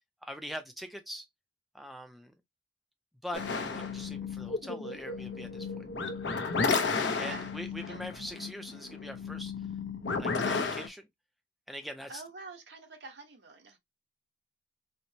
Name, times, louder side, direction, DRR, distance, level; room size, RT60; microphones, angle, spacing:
voice 1, 0.2-1.3 1.7-2.3 3.2-3.4 3.8-5.8 7.2-9.5 10.2-11.1 11.7-12.2, equal, ahead, 0.4 m, -42 dB
sound 1, 3.3-10.9, left 4 dB, 70° left, 0.7 m, -33 dB
voice 2, 7.1-7.5 7.9-8.1 12.1-13.8, right 3 dB, 70° right, 1.0 m, -47 dB
4.3 x 2.1 x 2.7 m
head